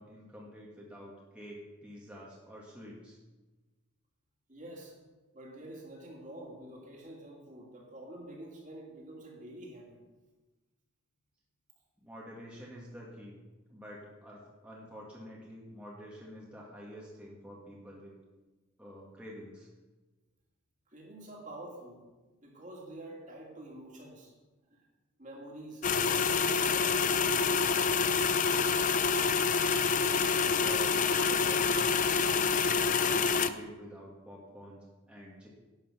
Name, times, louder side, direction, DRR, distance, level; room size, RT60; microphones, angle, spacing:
voice 1, 0.0-3.2 12.0-13.4 13.7-18.1 18.8-19.7 30.2-35.5, equal, 5° right, -5 dB, 1.8 m, -48 dB
voice 2, 4.5-5.0 5.3-10.0 20.9-22.0 22.4-24.3 24.7-24.8 25.2-28.2, right 1 dB, 35° right, -1 dB, 2.6 m, -47 dB
sound 1, 25.8-33.5, left 5 dB, 35° left, 0.5 m, -27 dB
11.5 x 9.1 x 6.1 m, 1.2 s
head